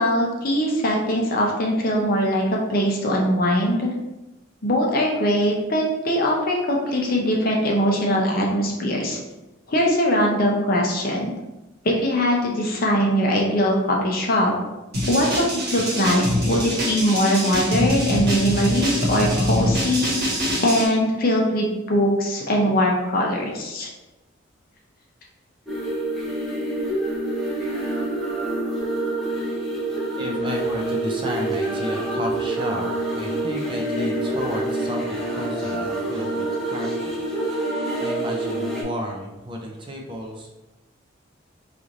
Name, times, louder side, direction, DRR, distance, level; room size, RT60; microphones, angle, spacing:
voice 1, 0.0-2.4 2.7-3.9 4.6-9.2 9.7-11.3 11.8-14.5 15.1-20.1 20.6-23.9, equal, 45° left, -1 dB, 0.7 m, -21 dB
sound 1, 14.9-20.9, equal, 50° right, 1.1 m, -24 dB
sound 2, 25.7-38.8, right 1 dB, ahead, 0.7 m, -26 dB
voice 2, 30.2-32.9 33.1-37.2 38.0-40.5, equal, 25° right, 1 dB, 0.4 m, -32 dB
3.1 x 2.5 x 3.9 m, 1.0 s
head